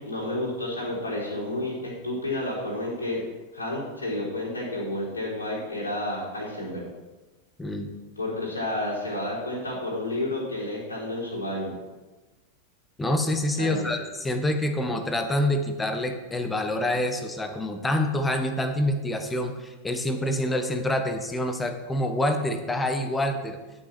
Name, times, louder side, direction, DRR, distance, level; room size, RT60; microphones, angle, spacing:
voice 1, 0.0-3.2 3.5-6.9 8.2-11.8 13.6-13.8, left 1 dB, 80° left, -5 dB, 3.8 m, -30 dB
voice 2, 7.6-7.9 13.0-23.6, left 1 dB, 10° left, 7 dB, 1.2 m, -27 dB
11.5 x 6.3 x 6.0 m, 1.2 s
figure-of-eight pair, 90°, 0 cm